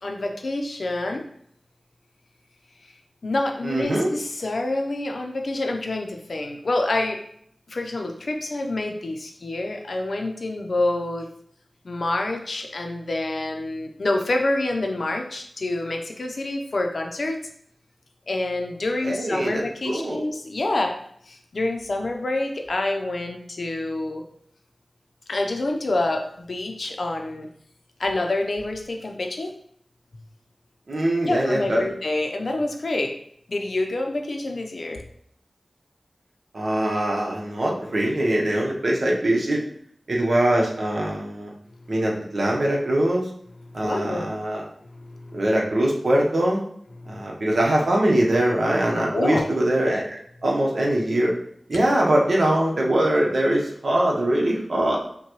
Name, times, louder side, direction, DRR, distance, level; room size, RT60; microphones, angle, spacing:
voice 1, 0.0-1.2 3.2-7.2 7.7-11.3 11.8-17.4 18.3-20.9 21.3-24.2 25.3-27.5 28.0-29.5 31.2-33.1 33.5-35.0 43.7-44.2 44.9-45.4 47.0-47.2 49.1-49.4, left 2 dB, 75° left, 3 dB, 0.6 m, -27 dB
voice 2, 3.6-4.1 19.0-20.2 30.9-31.9 36.5-39.6 40.1-41.5 41.9-43.3 43.7-44.6 45.3-46.6 47.1-51.3 51.7-55.0, right 1 dB, 70° right, -2 dB, 1.0 m, -22 dB
5.6 x 2.3 x 3.0 m, 0.67 s
wide cardioid pair, 70°, 0 cm